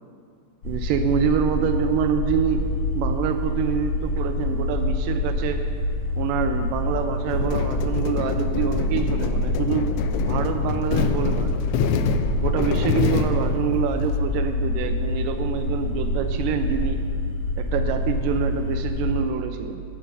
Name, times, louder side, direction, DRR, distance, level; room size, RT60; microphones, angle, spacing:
sound 1, 0.6-19.2, left 1 dB, 55° left, 1.7 m, -26 dB
voice 1, 0.7-2.6 3.0-5.6 6.2-11.6 12.4-17.0 17.6-19.9, right 7 dB, 85° right, 6 dB, 2.2 m, -26 dB
sound 2, 7.3-14.2, left 7 dB, 90° left, 1.6 m, -27 dB
15.0 x 5.8 x 5.4 m, 2.2 s
omnidirectional pair, 3.8 m